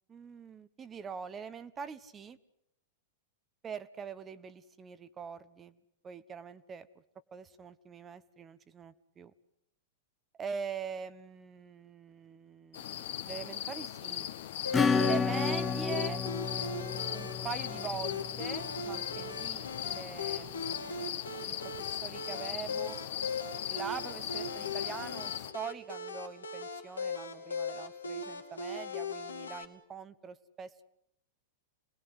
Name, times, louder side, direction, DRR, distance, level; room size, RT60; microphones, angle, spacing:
voice 1, 0.1-2.4 3.6-5.8 6.0-7.0 7.3-9.3 10.4-14.3 14.9-16.2 17.1-23.0 23.7-30.8, right 6 dB, 20° right, 14 dB, 1.2 m, -43 dB
sound 1, 12.7-25.5, left 11 dB, 60° left, 1.8 m, -39 dB
sound 2, 14.6-29.6, left 3 dB, 80° left, 2.3 m, -39 dB
Acoustic guitar / Strum, 14.7-19.0, left 5 dB, 15° left, 1.1 m, -31 dB
28.0 x 20.5 x 8.2 m, 0.79 s
figure-of-eight pair, 100°, 0 cm